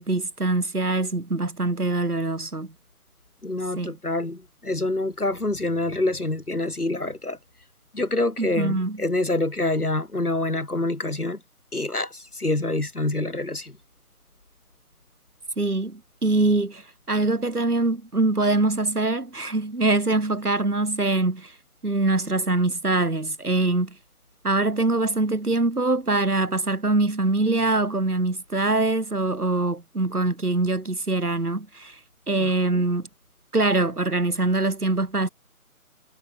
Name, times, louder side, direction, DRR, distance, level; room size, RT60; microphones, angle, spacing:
voice 1, 0.0-2.7 3.8-3.9 8.4-9.0 15.6-21.5 21.8-24.0 24.4-32.0 32.3-33.1 33.5-35.3, right 2 dB, 80° right, 3.0 m, -23 dB
voice 2, 3.4-7.4 7.9-11.4 11.7-13.7 32.4-32.5, left 2 dB, 75° left, 5.7 m, -26 dB
figure-of-eight pair, 165°, 45 cm